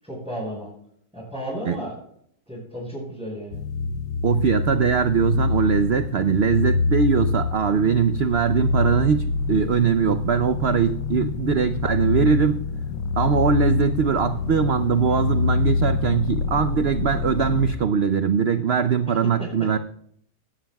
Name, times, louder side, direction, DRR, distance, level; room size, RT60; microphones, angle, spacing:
voice 1, 0.0-0.7 1.1-1.9 2.5-3.6 19.1-19.2, equal, 5° right, -7 dB, 5.8 m, -33 dB
sound 1, 3.5-17.7, left 4 dB, 85° left, 1.3 m, -25 dB
voice 2, 4.2-12.6 13.2-19.8, right 7 dB, 80° right, 10 dB, 0.5 m, -21 dB
17.0 x 13.0 x 2.3 m, 0.68 s
omnidirectional pair, 1.8 m